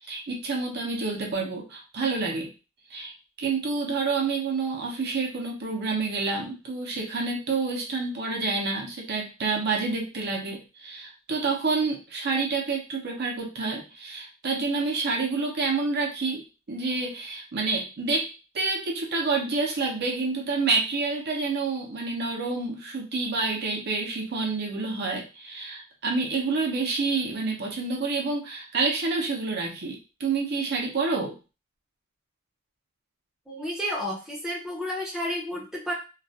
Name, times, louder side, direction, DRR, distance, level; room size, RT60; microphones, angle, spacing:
voice 1, 0.1-2.5 2.9-3.1 3.4-31.4, right 4 dB, 50° right, 0 dB, 0.6 m, -28 dB
voice 2, 33.5-35.9, equal, 5° right, -4 dB, 0.5 m, -31 dB
2.3 x 2.1 x 2.7 m, 0.31 s
head